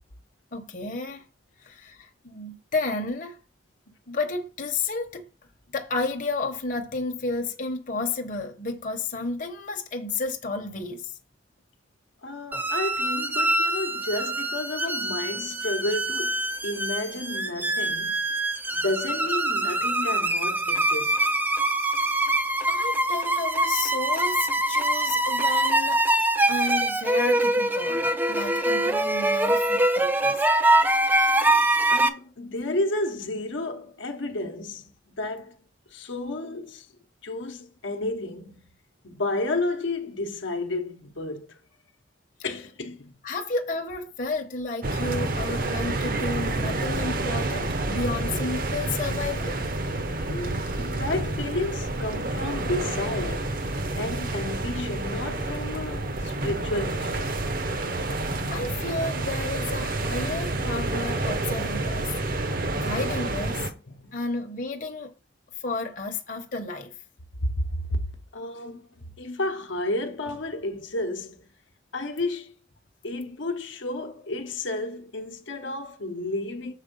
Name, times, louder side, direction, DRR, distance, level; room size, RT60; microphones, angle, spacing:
voice 1, 0.5-1.2 1.6-3.4 4.1-5.2 5.7-11.2 22.7-26.0 26.5-30.4 43.2-49.6 58.0-58.2 58.5-62.1 62.4-63.6 64.1-65.1 65.6-66.9, left 3 dB, 40° left, 0.9 m, -32 dB
voice 2, 12.2-18.2 18.7-21.2 31.9-35.6 35.9-36.9 37.2-38.6 39.0-41.6 42.4-43.1 50.0-57.4 63.4-64.2 67.4-68.0 68.3-68.9 69.2-71.4 71.9-72.5 73.0-76.7, left 2 dB, 75° left, 0.9 m, -32 dB
sound 1, 12.5-32.1, right 1 dB, 10° right, 0.4 m, -24 dB
sound 2, 44.8-63.7, right 2 dB, 50° right, 0.7 m, -29 dB
6.6 x 4.4 x 5.3 m
head